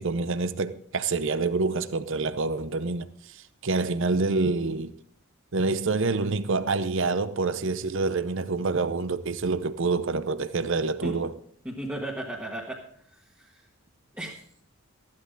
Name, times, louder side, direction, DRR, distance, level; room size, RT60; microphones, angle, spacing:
voice 1, 0.0-4.9 5.5-11.3, right 3 dB, 55° right, 0.7 m, -27 dB
voice 2, 11.6-12.8 13.1-13.6 14.1-14.4, right 1 dB, 5° right, 1.5 m, -35 dB
14.5 x 11.5 x 3.9 m
head